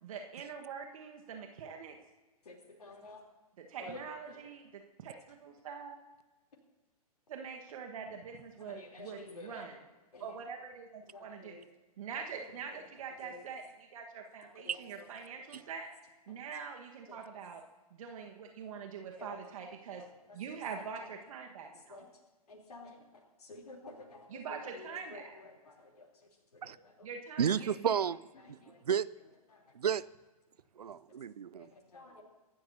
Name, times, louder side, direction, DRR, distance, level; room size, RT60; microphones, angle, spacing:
voice 1, 0.0-2.0 3.6-5.9 7.3-9.8 10.2-11.6 12.0-15.9 16.3-17.6 17.9-20.0 20.3-22.0 24.3-25.3 27.0-27.9, right 6 dB, 60° right, 1.5 m, -44 dB
voice 2, 2.5-3.2 3.8-4.0 4.3-4.4 8.6-9.7 10.1-10.3 11.1-11.6 12.7-12.8 13.2-13.4 14.7-15.7 17.1-17.2 19.2-20.1 21.0-21.1 21.6-22.1 22.5-23.0 23.4-26.1 26.5-27.1 28.4-28.8 29.5-29.6 31.6-32.2, left 2 dB, 75° left, 3.5 m, -51 dB
voice 3, 27.4-28.2 28.5-28.6 28.8-29.1 29.7-30.0 30.8-31.7, right 8 dB, 80° right, 0.5 m, -32 dB
25.0 x 12.5 x 2.8 m
hypercardioid pair, 120°, 20 cm